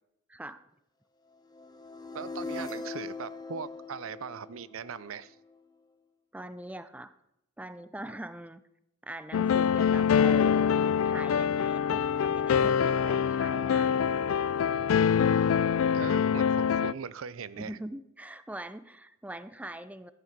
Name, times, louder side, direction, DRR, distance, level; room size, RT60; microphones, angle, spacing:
voice 1, 0.3-0.6 6.3-7.1 7.6-8.6 9.0-10.8 11.0-14.0 17.6-20.1, right 1 dB, 5° right, 13 dB, 0.5 m, -42 dB
sound 1, 1.5-5.6, left 3 dB, 20° left, 1.0 m, -41 dB
voice 2, 2.1-5.4 15.9-17.8, right 6 dB, 85° right, 17 dB, 0.5 m, -40 dB
sound 2, 9.3-16.9, left 7 dB, 75° left, 0.3 m, -25 dB
13.5 x 9.3 x 5.2 m, 0.80 s
head